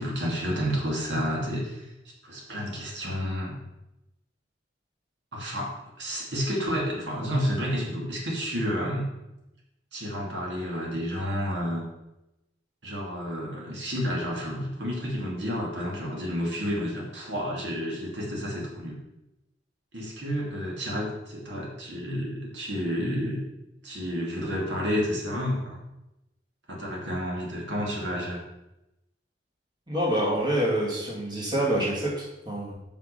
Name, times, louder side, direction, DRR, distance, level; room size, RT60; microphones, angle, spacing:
voice 1, 0.0-1.9 2.2-3.6 5.3-9.1 9.9-11.8 12.8-19.0 19.9-23.4 23.8-25.8 26.7-28.4, equal, 80° right, -2 dB, 2.5 m, -30 dB
voice 2, 29.9-32.8, right 1 dB, 25° right, -4 dB, 2.5 m, -26 dB
6.7 x 5.9 x 6.7 m, 0.92 s
head